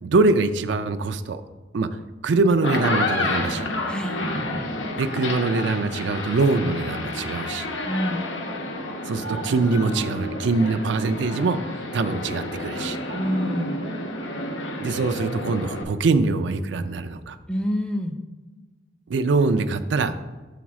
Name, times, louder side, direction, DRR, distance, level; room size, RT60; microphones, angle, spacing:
voice 1, 0.0-1.4 1.7-3.7 4.9-7.7 9.0-11.6 11.9-13.0 14.8-17.4 19.1-20.2, right 3 dB, 70° right, 9 dB, 0.4 m, -23 dB
sound 1, 2.5-15.8, left 2 dB, 80° left, 0.9 m, -30 dB
voice 2, 3.9-4.2 7.9-8.2 13.1-13.8 17.5-18.2, equal, 5° left, 4 dB, 0.4 m, -26 dB
5.8 x 4.0 x 6.2 m, 1.3 s
head